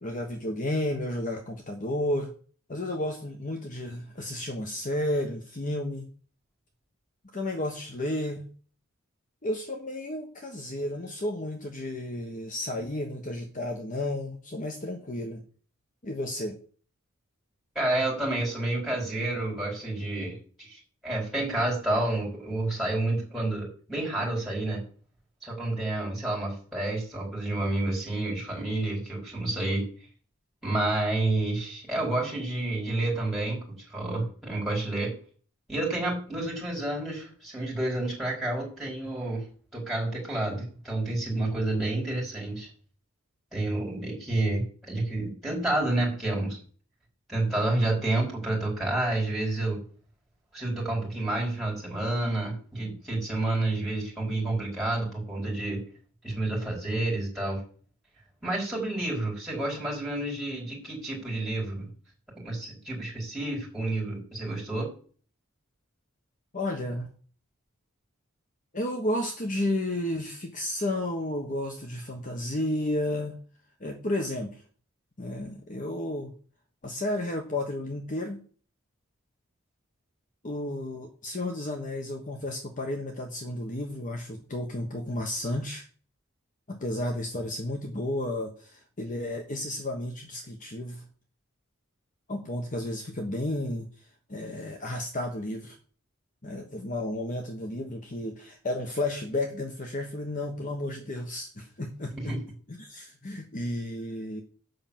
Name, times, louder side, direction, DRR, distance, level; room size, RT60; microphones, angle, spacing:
voice 1, 0.0-2.3 2.7-6.1 7.3-8.5 9.4-15.4 16.0-16.6 66.5-67.1 68.7-73.4 73.8-74.6 75.2-76.3 76.8-78.4 80.4-85.9 86.7-91.0 92.3-93.9 94.3-95.8 96.4-102.3 102.8-104.4, left 1 dB, 40° left, 3 dB, 1.1 m, -32 dB
voice 2, 17.7-24.8 25.4-29.8 30.6-33.6 33.9-35.1 35.7-39.4 39.7-42.7 43.5-46.6 47.3-49.8 50.5-55.8 56.2-57.6 58.4-61.9 62.4-64.9 102.1-102.4, right 2 dB, ahead, -4 dB, 4.8 m, -29 dB
7.9 x 5.8 x 7.4 m, 0.42 s
head